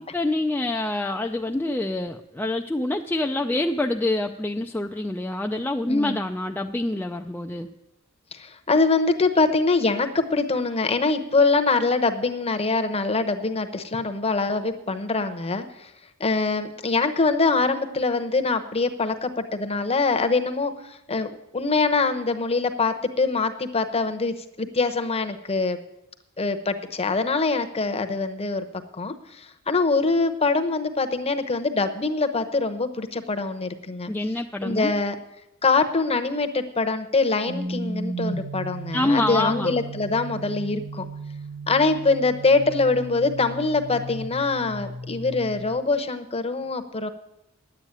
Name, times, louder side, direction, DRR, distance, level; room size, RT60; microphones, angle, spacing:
voice 1, 0.0-7.7 34.1-34.9 38.9-39.7, left 2 dB, 10° left, 3 dB, 0.4 m, -26 dB
voice 2, 5.9-6.2 8.3-15.9 16.2-25.8 26.4-28.6 29.0-34.1 34.6-35.1 35.6-41.0 41.7-47.1, left 3 dB, 25° left, 8 dB, 0.9 m, -24 dB
sound 1, 37.5-45.7, right 1 dB, 65° right, 1.4 m, -35 dB
10.0 x 8.8 x 8.7 m, 0.88 s
head